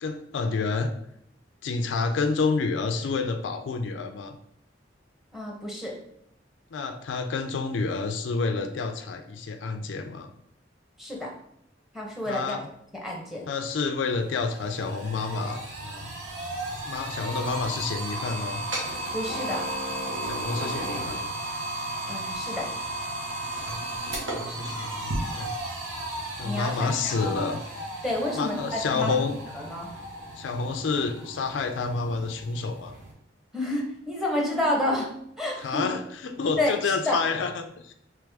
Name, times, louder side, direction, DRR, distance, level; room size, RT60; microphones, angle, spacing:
voice 1, 0.0-0.9 1.6-4.4 6.7-10.3 12.3-12.7 13.5-16.1 16.8-18.6 20.2-21.3 24.0-25.6 26.4-27.6 28.3-29.3 30.4-32.9 35.6-37.9, left 4 dB, 80° left, 7 dB, 0.4 m, -29 dB
voice 2, 5.3-5.9 11.0-11.3 11.9-12.6 13.0-13.5 19.1-19.6 22.1-22.6 26.4-27.3 28.0-29.1 29.5-29.9 33.5-35.1 35.4-35.8 36.6-37.2, left 1 dB, ahead, -2 dB, 0.8 m, -29 dB
sound 1, 13.7-13.8 14.1-33.1, right 1 dB, 80° right, 1.2 m, -34 dB
3.4 x 3.3 x 3.4 m, 0.73 s
head